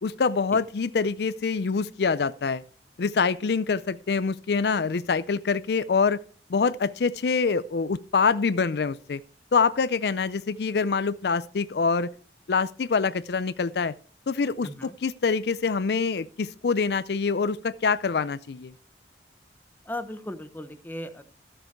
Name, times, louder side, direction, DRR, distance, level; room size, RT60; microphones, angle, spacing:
voice 1, 0.0-2.6 3.0-6.2 6.5-9.2 9.5-12.1 12.5-13.9 14.3-14.7 15.0-18.7, left 5 dB, 65° left, 0.5 m, -25 dB
voice 2, 14.6-15.0 19.8-21.2, left 1 dB, 10° left, 0.9 m, -37 dB
13.5 x 7.4 x 4.6 m
head